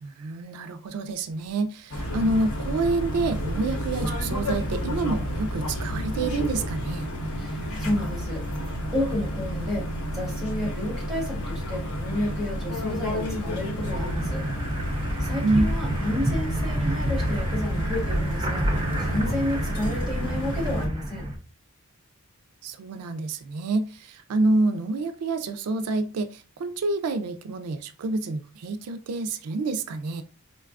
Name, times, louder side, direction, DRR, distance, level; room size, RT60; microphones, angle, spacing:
voice 1, 0.0-7.1 15.4-15.7 22.6-30.2, right 2 dB, 85° right, 0.4 m, -27 dB
sound 1, 1.9-20.9, equal, 90° left, 0.9 m, -31 dB
voice 2, 7.4-8.4 8.9-9.9 10.1-14.4 15.2-18.7 19.0-21.3, left 1 dB, 5° right, 1.2 m, -31 dB
sound 2, 13.8-21.4, right 1 dB, 20° right, 0.4 m, -29 dB
3.9 x 2.2 x 2.4 m
head